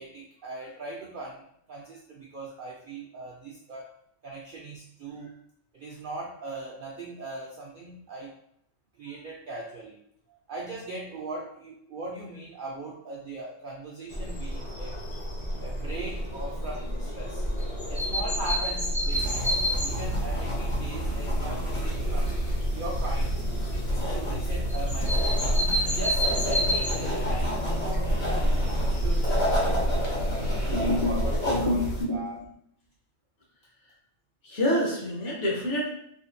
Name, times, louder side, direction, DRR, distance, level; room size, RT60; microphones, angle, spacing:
voice 1, 0.0-4.0 4.2-5.4 5.7-8.4 9.0-10.0 10.5-15.0 15.6-17.5 17.9-22.4 22.7-23.4 23.9-25.3 25.9-30.3 30.7-32.4, right 2 dB, 70° right, -2 dB, 0.4 m, -39 dB
sound 1, 14.1-31.4, equal, 35° left, 0.6 m, -29 dB
sound 2, 19.1-32.0, equal, 85° left, 1.9 m, -31 dB
voice 2, 30.7-31.1 31.5-32.2 34.4-35.9, left 1 dB, 65° left, -3 dB, 1.3 m, -27 dB
3.4 x 2.4 x 2.6 m, 0.71 s
omnidirectional pair, 1.4 m